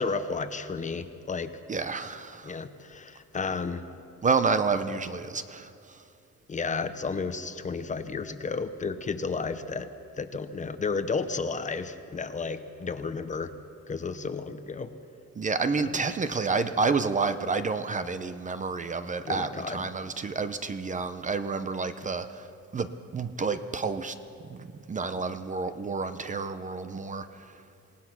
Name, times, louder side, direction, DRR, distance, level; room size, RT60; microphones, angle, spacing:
voice 1, 0.0-1.5 2.4-3.8 6.5-9.9 10.2-13.5 13.9-14.9 15.8-16.0 19.2-19.9, left 4 dB, 25° left, 10 dB, 0.8 m, -32 dB
voice 2, 1.7-2.5 4.2-5.7 15.4-22.3 22.7-24.1 24.5-24.6 24.9-27.3, right 4 dB, 25° right, 10 dB, 0.6 m, -29 dB
27.5 x 18.0 x 6.1 m, 2.5 s
wide cardioid pair, 180°, 29 cm